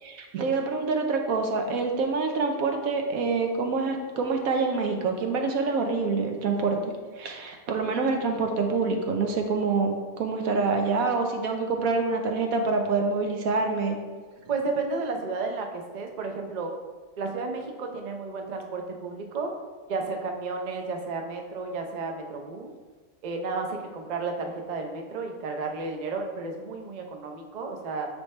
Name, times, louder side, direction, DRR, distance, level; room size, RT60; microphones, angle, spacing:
voice 1, 0.0-6.8 7.2-14.0, right 4 dB, 90° right, 3 dB, 1.2 m, -26 dB
voice 2, 14.5-16.7 17.2-19.5 19.9-22.7 23.2-28.1, right 3 dB, 45° right, 3 dB, 0.5 m, -32 dB
9.3 x 3.2 x 3.2 m, 1.4 s
omnidirectional pair, 1.4 m